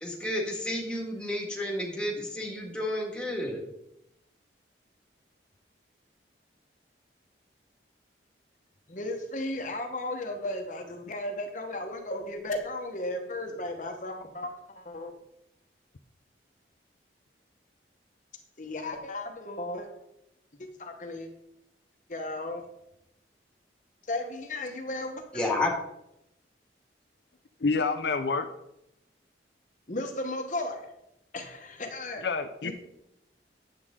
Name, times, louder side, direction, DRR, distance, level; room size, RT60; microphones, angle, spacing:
voice 1, 0.0-3.6 25.3-25.7, left 1 dB, 5° left, -1 dB, 1.8 m, -31 dB
voice 2, 8.9-15.1 18.6-19.9 20.6-21.3 22.1-22.6 24.1-25.4 29.9-30.9 31.3-32.2 32.6-32.7, left 1 dB, 45° left, 4 dB, 1.1 m, -35 dB
voice 3, 27.6-28.5 32.2-32.7, left 4 dB, 70° left, 7 dB, 0.6 m, -27 dB
10.0 x 7.8 x 3.7 m, 0.83 s
head